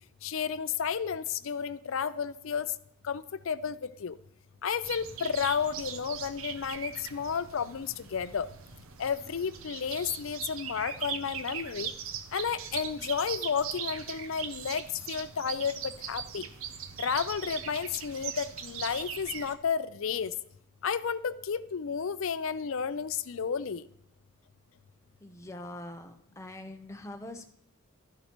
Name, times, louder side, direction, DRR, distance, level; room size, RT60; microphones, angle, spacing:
voice 1, 0.2-2.7 3.0-4.2 4.6-8.5 9.0-11.9 12.3-16.5 17.0-20.3 20.8-23.9, left 6 dB, 65° left, 0.5 m, -32 dB
sound 1, 4.8-19.5, right 8 dB, 70° right, 0.7 m, -40 dB
voice 2, 25.2-27.5, left 1 dB, 15° left, 0.8 m, -43 dB
12.5 x 10.5 x 3.0 m
head